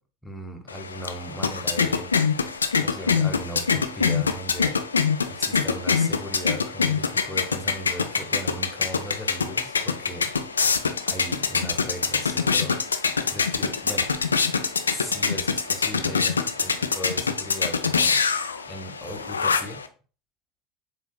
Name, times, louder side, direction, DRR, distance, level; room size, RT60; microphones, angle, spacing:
voice 1, 0.2-2.3 2.8-4.8 5.3-10.3 11.1-14.2 14.9-18.2 18.7-19.8, right 1 dB, 5° left, 3 dB, 1.0 m, -37 dB
sound 1, 0.7-19.9, left 5 dB, 80° left, 0.3 m, -25 dB
7.2 x 2.8 x 2.3 m, 0.38 s
figure-of-eight pair, 70°, 0 cm